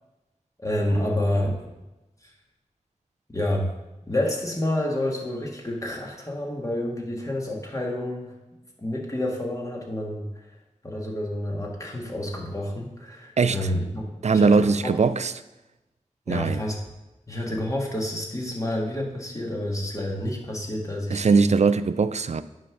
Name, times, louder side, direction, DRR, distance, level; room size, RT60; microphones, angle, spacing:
voice 1, 0.6-1.7 2.2-2.3 3.3-3.7 4.1-8.3 8.8-10.5 10.8-15.0 16.3-16.8 17.3-21.4, left 1 dB, 25° left, -1 dB, 1.8 m, -29 dB
voice 2, 13.4-13.7 14.2-15.3 16.3-16.6 21.1-22.4, right 4 dB, 60° right, 13 dB, 0.4 m, -21 dB
9.2 x 3.8 x 6.0 m, 1.0 s
wide cardioid pair, 55°, 13 cm